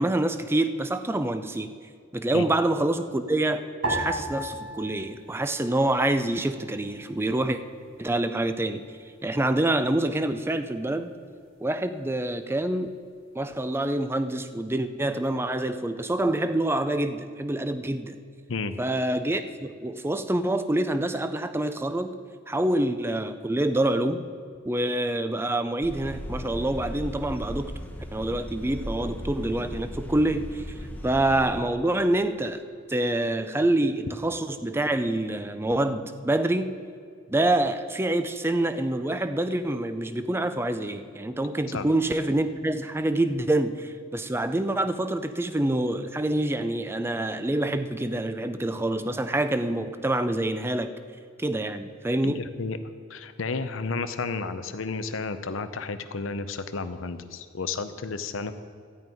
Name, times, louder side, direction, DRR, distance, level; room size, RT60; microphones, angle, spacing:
voice 1, 0.0-1.7 2.1-7.6 8.0-8.8 9.2-11.1 11.6-12.9 13.4-18.2 18.8-22.1 22.5-24.2 24.6-27.7 28.1-30.6 31.0-32.6 32.9-36.7 37.3-50.9 51.4-52.4, right 1 dB, 10° right, 10 dB, 0.4 m, -26 dB
sound 1, 3.8-6.4 6.6-7.5 8.1-8.6, right 1 dB, 80° right, 1.9 m, -34 dB
sound 2, 25.8-31.6, left 1 dB, 10° left, 0.9 m, -37 dB
voice 2, 52.2-52.8 53.1-58.5, left 4 dB, 80° left, 10 dB, 0.7 m, -32 dB
13.0 x 5.5 x 9.2 m, 2.2 s
head